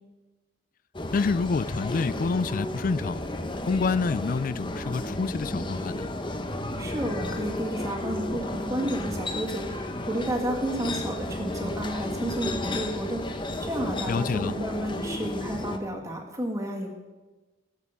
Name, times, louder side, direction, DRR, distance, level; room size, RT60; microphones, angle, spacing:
Farmer's market rear, 0.9-15.8, left 1 dB, 25° left, 0.8 m, -33 dB
voice 1, 1.1-3.2 3.7-6.1 14.1-14.5, left 4 dB, 45° left, 18 dB, 0.3 m, -27 dB
voice 2, 6.8-16.9, right 1 dB, 15° right, 0 dB, 1.8 m, -31 dB
15.5 x 7.4 x 6.9 m, 1.2 s
head